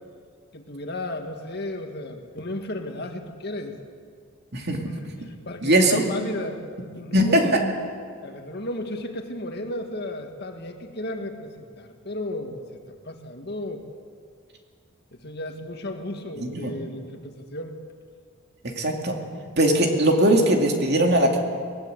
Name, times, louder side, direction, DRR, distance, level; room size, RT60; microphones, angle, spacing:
voice 1, 0.5-3.8 5.2-6.6 6.9-7.6 8.2-13.9 15.2-17.7, left 1 dB, 50° left, 4 dB, 2.0 m, -34 dB
voice 2, 4.5-4.8 5.6-6.0 7.1-7.5 16.4-16.7 18.6-19.2 19.6-21.4, right 1 dB, 50° right, 2 dB, 2.8 m, -20 dB
22.0 x 19.0 x 8.2 m, 2.1 s
head